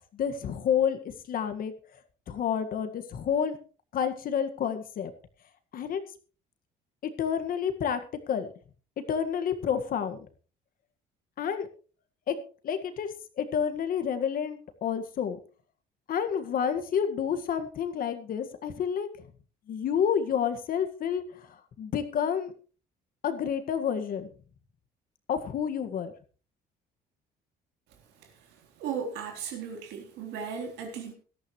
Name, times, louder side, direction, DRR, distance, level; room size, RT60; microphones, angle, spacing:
voice 1, 0.1-1.0 1.3-1.7 2.3-3.6 3.9-5.1 5.7-6.0 7.0-8.0 8.3-8.5 9.1-10.3 11.4-11.7 12.3-12.4 12.6-15.4 16.1-19.1 19.7-22.5 23.2-24.3 25.3-26.1, left 8 dB, 60° left, 9 dB, 1.8 m, -29 dB
voice 2, 28.8-31.1, right 6 dB, 90° right, 3 dB, 3.7 m, -36 dB
18.0 x 13.0 x 3.2 m, 0.36 s
cardioid pair, 110°, 17 cm